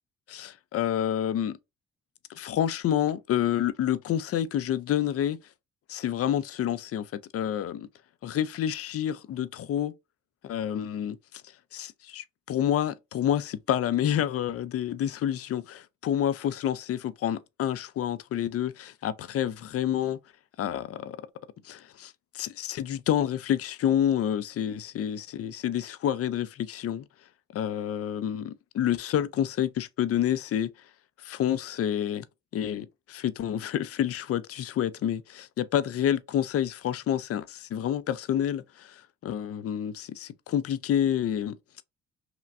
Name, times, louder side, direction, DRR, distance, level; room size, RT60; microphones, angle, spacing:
voice 1, 0.3-1.6 2.3-5.4 5.9-7.1 7.3-7.9 8.2-9.9 10.4-11.4 11.7-20.2 20.6-21.2 21.6-27.0 27.5-30.7 31.2-32.3 32.5-41.6, left 10 dB, 50° left, 0.4 m, -28 dB
5.8 x 2.1 x 2.4 m
cardioid pair, 90°, 30 cm